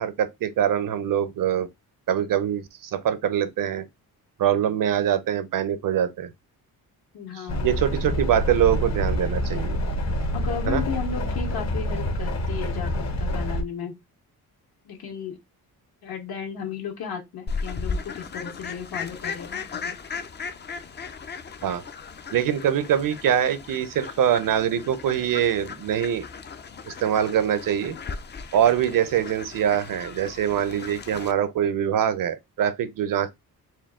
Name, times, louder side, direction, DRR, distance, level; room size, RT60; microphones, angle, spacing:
voice 1, 0.0-1.7 2.1-3.8 4.4-6.3 7.6-9.8 10.7-10.8 21.6-21.8 22.3-26.2 26.9-28.0 28.5-33.3, right 9 dB, 60° right, 0.7 m, -24 dB
voice 2, 7.1-7.7 10.3-13.9 14.8-15.4 16.0-20.0, left 7 dB, 75° left, 1.6 m, -34 dB
sound 1, 7.5-13.6, equal, 45° left, 0.9 m, -27 dB
Fowl, 17.5-31.3, left 5 dB, 30° left, 0.5 m, -36 dB
4.4 x 2.3 x 3.6 m
cardioid pair, 110°, 38 cm